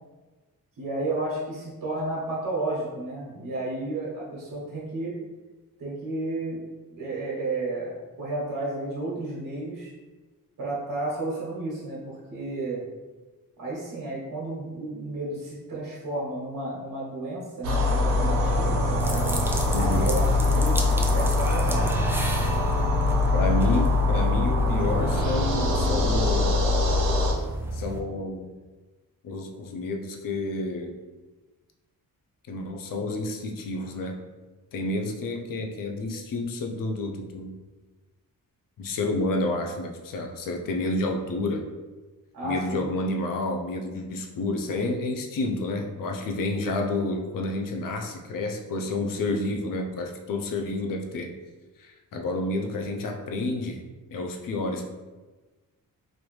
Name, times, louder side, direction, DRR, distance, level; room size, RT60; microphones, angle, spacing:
voice 1, 0.8-5.2 5.8-6.6 6.9-9.9 10.6-12.8 13.6-18.9 19.7-20.8 21.1-22.1 42.3-42.9, right 2 dB, 65° right, -6 dB, 1.1 m, -32 dB
sound 1, 17.6-27.3, left 2 dB, 90° right, 0.7 m, -23 dB
sound 2, 19.0-28.0, right 1 dB, 5° right, 0.3 m, -34 dB
voice 2, 19.7-20.1 23.3-26.6 27.7-28.5 29.2-30.9 32.5-34.2 34.7-37.6 38.8-41.7 42.4-51.3 51.8-53.8 54.1-54.9, left 2 dB, 65° left, 3 dB, 0.5 m, -30 dB
3.2 x 2.6 x 3.1 m, 1.2 s
cardioid pair, 105°, 35 cm